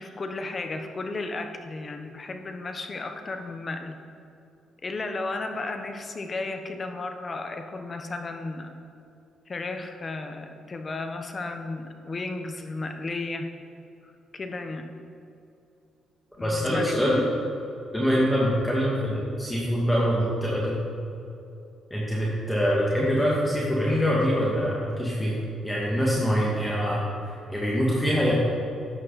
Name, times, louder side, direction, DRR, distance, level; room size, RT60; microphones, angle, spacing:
voice 1, 0.0-4.0 4.8-8.8 9.5-13.5 14.3-14.9 16.4-16.9, left 3 dB, 35° left, 6 dB, 1.2 m, -34 dB
voice 2, 16.4-17.2 17.9-20.8 21.9-25.3 25.6-28.3, equal, 10° left, -6 dB, 2.3 m, -24 dB
13.5 x 9.7 x 4.3 m, 2.8 s
cardioid pair, 90°, 0 cm